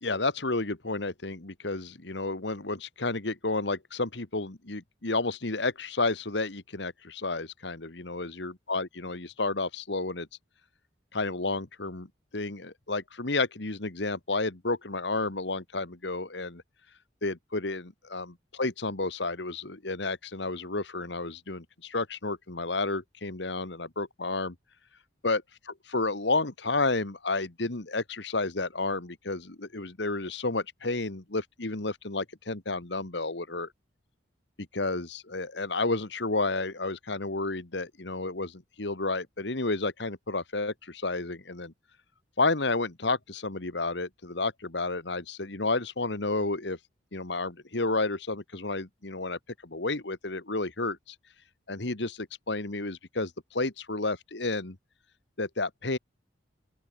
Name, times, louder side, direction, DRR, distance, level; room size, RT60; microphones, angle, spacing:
voice 1, 0.0-10.3 11.1-16.6 17.2-24.6 25.2-25.4 25.9-33.7 34.7-41.7 42.4-46.8 47.1-51.2 51.7-54.8 55.4-56.0, left 3 dB, 70° left, 1.8 m, -31 dB
open air
head